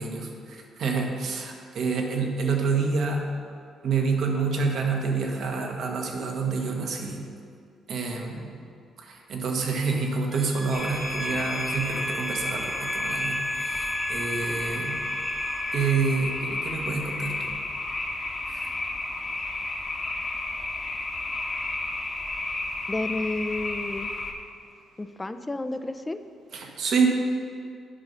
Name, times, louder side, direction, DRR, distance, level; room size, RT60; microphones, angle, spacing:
voice 1, 0.0-3.3 3.8-7.3 7.9-8.5 9.0-15.0 15.7-17.4 18.5-18.7 26.5-27.1, right 4 dB, 65° right, 2 dB, 1.2 m, -28 dB
sound 1, 10.3-16.2, equal, 10° right, 0.9 m, -35 dB
sound 2, 10.7-24.3, left 2 dB, 35° left, 1.1 m, -32 dB
voice 2, 22.9-24.1 25.0-26.2, left 2 dB, 15° left, 9 dB, 0.4 m, -31 dB
8.8 x 5.3 x 5.4 m, 2.4 s
cardioid pair, 90°, 0 cm